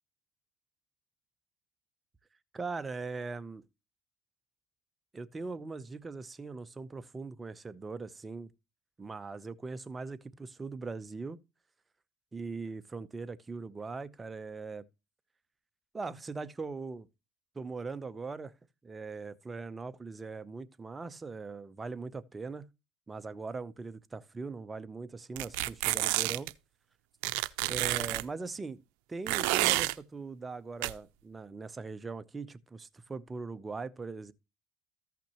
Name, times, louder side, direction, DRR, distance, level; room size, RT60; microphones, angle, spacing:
voice 1, 2.5-3.6 5.1-8.5 9.0-11.4 12.3-14.8 15.9-17.1 17.5-18.5 18.8-22.7 23.1-26.5 27.7-28.8 29.1-34.3, right 4 dB, 20° right, 0.6 m, -40 dB
sound 1, 25.4-26.5 27.2-28.2 29.3-29.9 30.8-30.9, right 20 dB, 80° right, 0.5 m, -29 dB
14.5 x 5.9 x 3.0 m
supercardioid pair, 110°, 0 cm